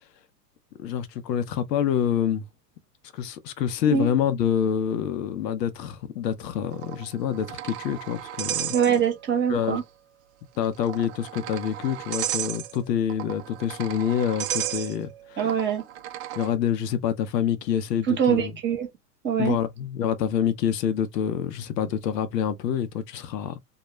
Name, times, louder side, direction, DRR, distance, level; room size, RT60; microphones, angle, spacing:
voice 1, 0.8-2.5 3.1-8.7 9.5-9.8 10.6-15.6 16.3-18.5 19.4-23.6, left 9 dB, 80° left, 0.7 m, -27 dB
sound 1, 6.7-9.4 9.7-9.8 10.6-16.5, right 12 dB, 45° right, 0.5 m, -34 dB
voice 2, 8.7-9.8 15.4-15.8 18.1-18.9 19.2-19.6, right 8 dB, 25° right, 0.9 m, -23 dB
2.3 x 2.1 x 2.9 m
hypercardioid pair, 115°, 48 cm